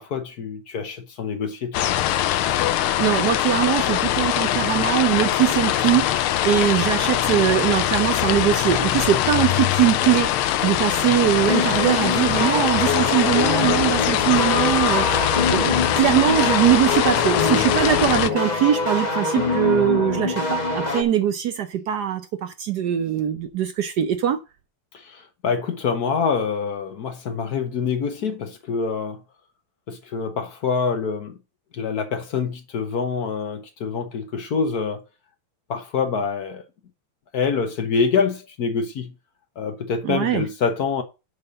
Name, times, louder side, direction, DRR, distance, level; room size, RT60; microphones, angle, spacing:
voice 1, 0.0-1.9 24.9-29.2 29.9-31.3 31.7-35.0 35.7-36.6 37.3-39.1 39.6-41.0, left 5 dB, 55° left, 1.3 m, -26 dB
sound 1, 1.7-18.3, left 12 dB, 80° left, 1.5 m, -22 dB
voice 2, 3.0-6.1 6.4-24.4 40.0-40.4, right 11 dB, 70° right, 1.0 m, -21 dB
sound 2, 11.5-21.0, left 3 dB, 25° left, 1.1 m, -24 dB
6.6 x 5.5 x 6.6 m
omnidirectional pair, 2.3 m